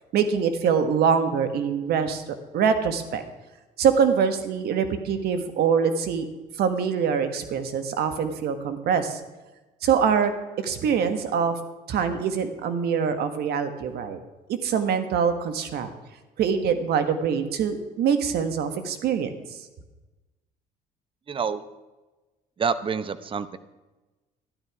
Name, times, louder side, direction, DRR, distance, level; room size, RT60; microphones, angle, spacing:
voice 1, 0.1-3.2 3.8-6.3 6.6-9.2 9.8-10.3 10.6-11.5 11.9-14.2 14.5-15.9 16.4-19.6, right 7 dB, 70° right, 9 dB, 1.5 m, -24 dB
voice 2, 21.3-21.6 22.6-23.6, right 6 dB, 30° right, 14 dB, 0.8 m, -27 dB
12.5 x 11.5 x 4.9 m, 1.1 s
cardioid pair, 110°, 17 cm